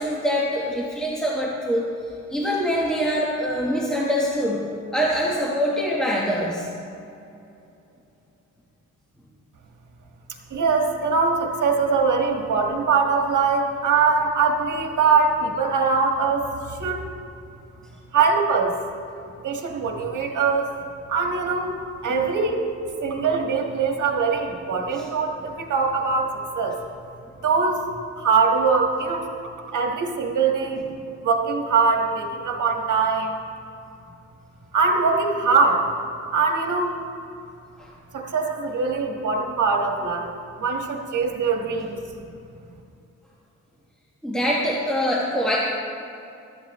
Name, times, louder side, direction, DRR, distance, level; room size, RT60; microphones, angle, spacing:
voice 1, 0.0-1.9 2.3-4.6 4.9-6.7 24.9-25.1 37.8-37.9 44.2-45.6, equal, ahead, -5 dB, 1.1 m, -24 dB
voice 2, 10.5-17.0 18.1-18.7 19.4-20.7 21.1-21.8 22.0-22.6 23.0-26.3 26.5-26.7 27.4-27.8 28.1-29.3 29.7-30.8 31.2-33.4 34.7-35.9 36.3-37.0 38.1-40.3 40.6-42.0, right 4 dB, 75° right, 2 dB, 1.5 m, -22 dB
14.5 x 12.5 x 3.0 m, 2.7 s
wide cardioid pair, 165°, 30 cm